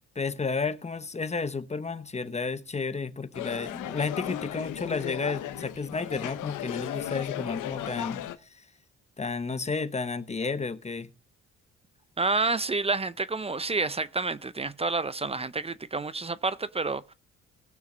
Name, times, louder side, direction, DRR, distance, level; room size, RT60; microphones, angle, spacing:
voice 1, 0.1-8.2 8.5-8.6 9.2-11.1, left 4 dB, 20° left, 1.0 m, -32 dB
sound 1, 3.3-8.4, left 12 dB, 85° left, 1.0 m, -36 dB
voice 2, 12.2-17.1, right 3 dB, 20° right, 0.6 m, -29 dB
19.0 x 6.3 x 3.9 m
cardioid pair, 90°, 30 cm